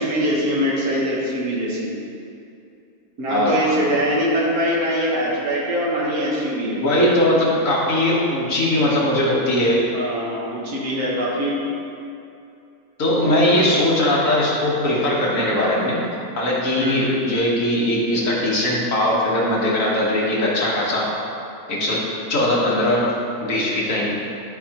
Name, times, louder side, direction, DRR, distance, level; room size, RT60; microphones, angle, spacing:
voice 1, 0.0-1.9 3.2-6.8 9.9-11.6 13.1-13.8 16.8-17.2, equal, 75° right, -4 dB, 1.8 m, -23 dB
voice 2, 3.3-3.8 6.8-9.8 13.0-16.0 16.4-21.1 21.7-24.1, left 1 dB, 60° left, -5 dB, 1.7 m, -20 dB
11.5 x 4.8 x 2.9 m, 2.6 s
omnidirectional pair, 1.6 m